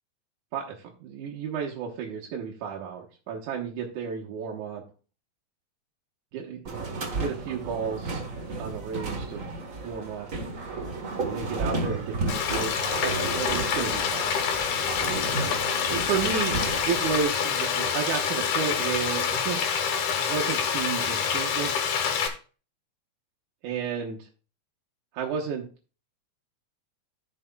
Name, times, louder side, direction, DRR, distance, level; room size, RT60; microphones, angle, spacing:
voice 1, 0.5-4.8 6.3-6.8 7.1-8.2 8.6-9.5 9.8-10.3 11.2-12.9 13.3-14.6 15.9-16.6 16.9-19.7 20.2-21.7 23.6-24.3 25.1-25.7, right 6 dB, 85° right, -2 dB, 2.6 m, -32 dB
sound 1, 6.6-17.2, right 3 dB, 45° right, 1.0 m, -33 dB
Frying (food), 12.3-22.3, left 7 dB, 90° left, 2.7 m, -27 dB
14.5 x 6.1 x 2.3 m, 0.36 s
omnidirectional pair, 3.4 m